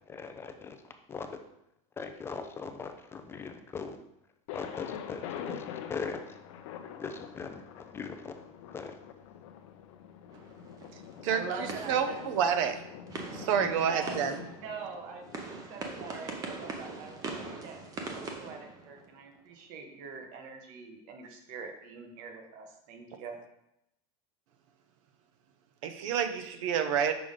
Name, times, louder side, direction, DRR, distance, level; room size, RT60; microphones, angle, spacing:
voice 1, 0.1-0.8 1.1-1.4 2.0-4.0 4.5-6.4 7.0-7.6 7.9-8.4 8.7-9.0, left 5 dB, 15° left, 7 dB, 0.3 m, -40 dB
Thunder, 4.5-16.3, left 8 dB, 65° left, 0.6 m, -45 dB
sound 1, 10.3-19.4, right 3 dB, 20° right, 0.7 m, -42 dB
voice 2, 11.3-12.6 13.8-14.2 14.5-17.8 18.1-23.4, right 5 dB, 50° right, 4 dB, 1.1 m, -43 dB
voice 3, 11.9-12.7 13.3-14.4 25.8-27.1, right 8 dB, 65° right, 9 dB, 0.7 m, -28 dB
6.1 x 4.9 x 3.7 m, 0.81 s
supercardioid pair, 155°, 18 cm